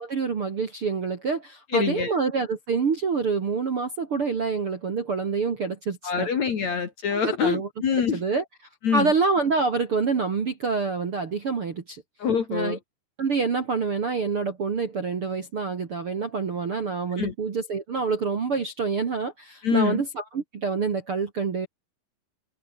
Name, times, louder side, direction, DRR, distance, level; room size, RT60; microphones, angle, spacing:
voice 1, 0.0-6.3 7.1-8.4 8.9-12.0 12.5-12.8 13.2-21.7, right 4 dB, 40° right, 2.1 m, -27 dB
voice 2, 1.7-2.1 6.0-8.2 8.8-9.1 12.2-12.8 17.2-17.3 19.6-20.0, left 7 dB, 50° left, 2.7 m, -25 dB
omnidirectional pair, 5.2 m